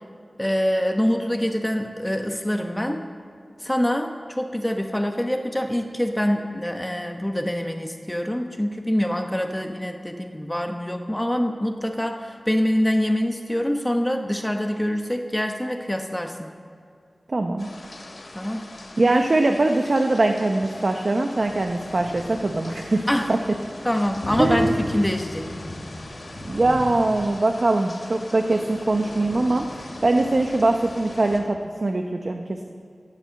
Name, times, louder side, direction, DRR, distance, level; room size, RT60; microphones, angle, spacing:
voice 1, 0.4-3.0 3.6-16.5 18.3-18.6 23.1-23.3 23.8-25.5, equal, 10° left, 4 dB, 1.0 m, -25 dB
voice 2, 17.3-17.7 19.0-23.4 24.4-24.9 26.4-32.7, right 2 dB, 55° right, 4 dB, 0.9 m, -22 dB
sound 1, 17.6-31.4, left 1 dB, 65° left, 2.9 m, -37 dB
17.5 x 8.6 x 7.7 m, 2.3 s
wide cardioid pair, 60°, 0 cm